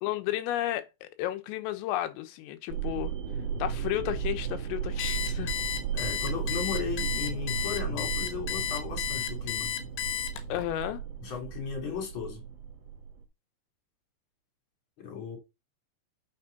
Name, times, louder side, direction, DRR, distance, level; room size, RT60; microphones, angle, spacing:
voice 1, 0.0-3.1 3.6-5.5 10.5-11.0, left 14 dB, 90° left, 3.7 m, -32 dB
sound 1, 2.7-13.2, right 7 dB, 80° right, 1.4 m, -35 dB
Alarm, 5.0-10.6, left 11 dB, 70° left, 3.2 m, -33 dB
voice 2, 5.9-9.7 11.2-12.4 15.0-15.4, left 6 dB, 30° left, 3.1 m, -36 dB
7.1 x 6.1 x 5.3 m
omnidirectional pair, 5.8 m